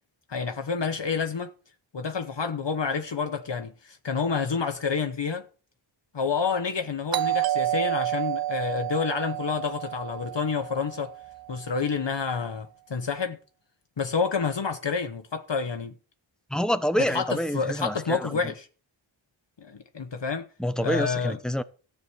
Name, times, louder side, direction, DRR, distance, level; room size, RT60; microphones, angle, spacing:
voice 1, 0.3-1.5 1.9-5.4 6.1-11.1 11.5-13.4 14.0-15.9 17.1-18.7 19.6-20.5 20.8-21.4, left 5 dB, 60° left, 1.1 m, -29 dB
Doorbell, 7.1-11.7, right 13 dB, 50° right, 0.5 m, -30 dB
voice 2, 16.5-18.4 20.6-21.6, equal, ahead, 1.0 m, -27 dB
14.0 x 5.1 x 9.2 m
wide cardioid pair, 55°, 49 cm